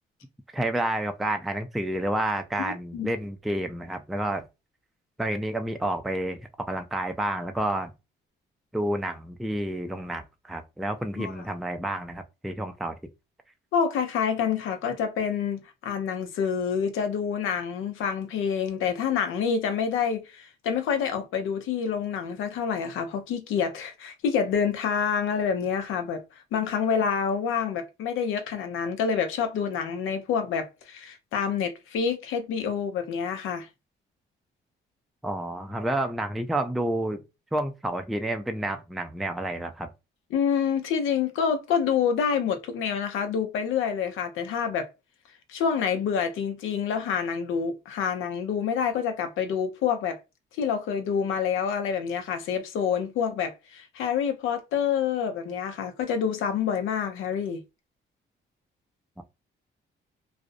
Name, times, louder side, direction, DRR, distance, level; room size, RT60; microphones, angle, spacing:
voice 1, 0.5-4.4 5.2-7.9 8.7-13.0 35.2-37.2 37.5-39.9 59.2-59.3, right 1 dB, ahead, 0.3 m, -29 dB
voice 2, 2.6-3.1 11.2-11.5 13.7-26.2 26.5-33.7 40.3-44.9 45.5-50.2 50.5-57.6, left 7 dB, 85° left, 0.6 m, -27 dB
2.5 x 2.0 x 2.5 m
cardioid pair, 90°, 20 cm